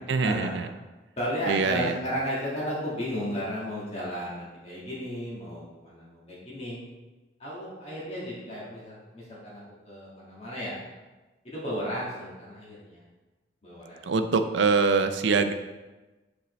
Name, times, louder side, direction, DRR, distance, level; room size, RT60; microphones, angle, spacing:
voice 1, 0.1-0.7 1.5-1.9 14.1-15.5, right 4 dB, 75° right, 9 dB, 0.5 m, -24 dB
voice 2, 1.2-6.8 7.4-10.7 11.4-13.0 13.6-14.0, equal, 35° left, -6 dB, 1.6 m, -34 dB
6.8 x 5.2 x 3.1 m, 1.2 s
head